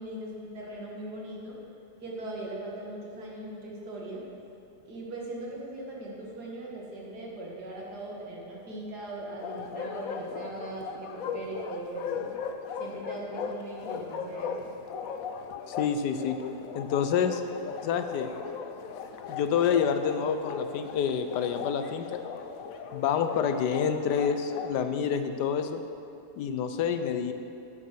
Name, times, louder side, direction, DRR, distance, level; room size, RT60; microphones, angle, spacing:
voice 1, 0.0-1.5 2.0-4.2 4.9-12.2 12.8-14.8, right 2 dB, 75° right, -3 dB, 2.5 m, -39 dB
Bark, 9.4-24.7, left 6 dB, 65° left, 1.0 m, -38 dB
voice 2, 15.7-16.4 16.7-17.4 17.8-18.3 19.3-22.2 22.9-25.8 26.4-27.3, left 7 dB, 90° left, 8 dB, 1.3 m, -28 dB
10.5 x 8.5 x 6.0 m, 2.7 s
omnidirectional pair, 1.7 m